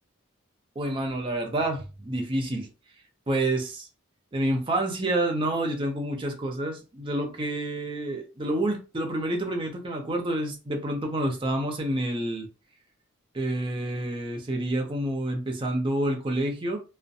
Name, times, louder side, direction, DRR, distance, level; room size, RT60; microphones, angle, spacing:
voice 1, 0.8-2.7 3.3-3.9 4.3-12.5 13.3-16.8, right 1 dB, 25° right, 0.5 m, -28 dB
2.5 x 2.1 x 2.6 m
head